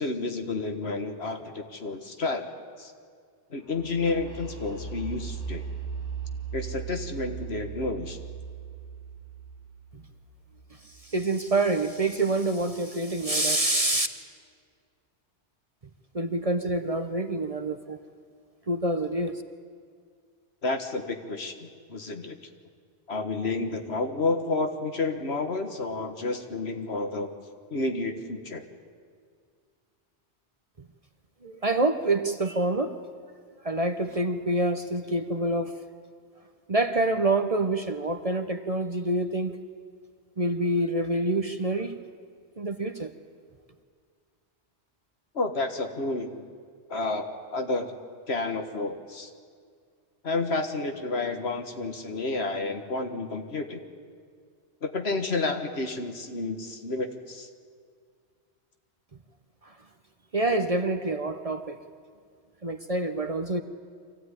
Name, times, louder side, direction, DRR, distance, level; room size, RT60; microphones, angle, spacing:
voice 1, 0.0-2.4 2.8-2.9 3.5-5.6 6.5-8.2 20.6-22.4 23.1-27.3 27.7-28.6 45.3-46.5 46.9-47.9 48.3-49.3 50.2-53.8 54.8-57.5, left 3 dB, 70° left, 6 dB, 1.8 m, -30 dB
sound 1, 3.7-11.4, right 6 dB, 5° left, 6.8 m, -38 dB
voice 2, 10.8-14.1 16.1-18.0 18.7-19.4 30.8-30.9 31.4-33.0 33.6-35.7 36.7-39.6 40.4-42.0 42.6-43.1 59.6-59.8 60.3-61.8 62.6-63.6, right 2 dB, 35° right, 9 dB, 0.9 m, -27 dB
24.0 x 15.5 x 9.8 m, 2.1 s
omnidirectional pair, 1.1 m